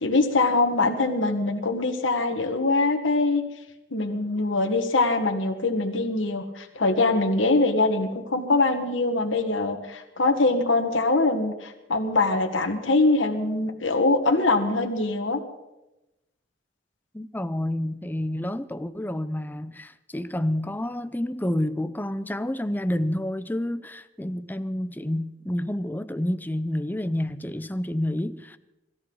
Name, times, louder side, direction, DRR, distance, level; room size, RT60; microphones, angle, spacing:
voice 1, 0.0-3.4 3.9-15.4, left 2 dB, 75° left, 1.6 m, -23 dB
voice 2, 17.1-28.6, left 1 dB, 10° left, 0.6 m, -29 dB
23.5 x 14.0 x 3.9 m
head